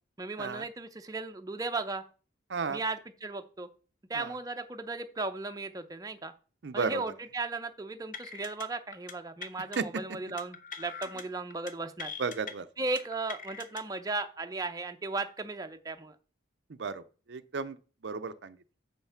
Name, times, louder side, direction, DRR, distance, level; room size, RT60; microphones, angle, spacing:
voice 1, 0.2-2.0 2.7-3.7 4.1-6.3 6.7-12.1 12.8-16.2, right 3 dB, 20° right, 0.5 m, -36 dB
voice 2, 6.6-7.0 9.8-9.9 12.2-12.7 16.8-17.0 17.3-17.8 18.0-18.6, right 5 dB, 65° right, 0.5 m, -33 dB
sound 1, 8.1-8.7 8.9-9.1 9.4-9.8 10.4-11.2 11.5-11.7 12.0-12.5 13.0-13.8, left 6 dB, 45° left, 0.8 m, -42 dB
7.3 x 5.7 x 5.6 m
head